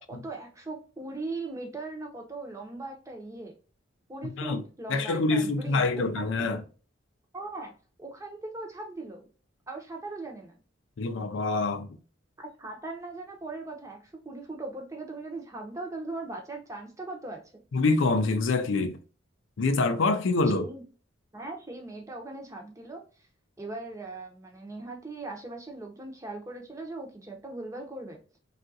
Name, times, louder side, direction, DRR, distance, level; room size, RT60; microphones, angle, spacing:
voice 1, 0.1-3.5 4.1-6.6 7.3-7.7 8.0-9.3 9.7-10.5 12.6-17.4 20.5-20.8 21.3-23.0 23.6-28.2, right 2 dB, 15° right, 0.6 m, -39 dB
voice 2, 4.2-4.6 4.9-6.6 11.0-12.0 17.7-19.0 19.6-20.7, left 3 dB, 75° left, 0.4 m, -26 dB
3.5 x 2.4 x 2.6 m
head